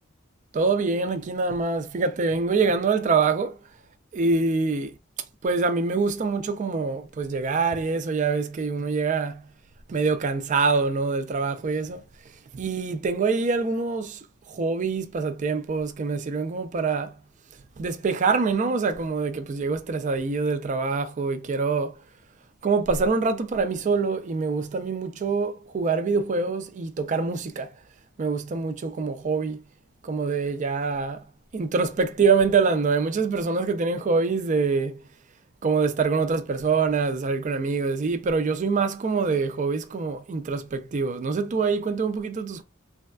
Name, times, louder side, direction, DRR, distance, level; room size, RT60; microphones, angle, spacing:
voice 1, 0.5-3.6 4.1-4.9 5.4-9.4 9.9-12.0 12.5-14.2 14.5-17.1 17.8-21.9 22.6-27.7 28.2-29.6 30.0-31.2 31.5-35.0 35.6-42.6, right 4 dB, 35° right, 0.4 m, -25 dB
3.3 x 2.3 x 2.2 m
head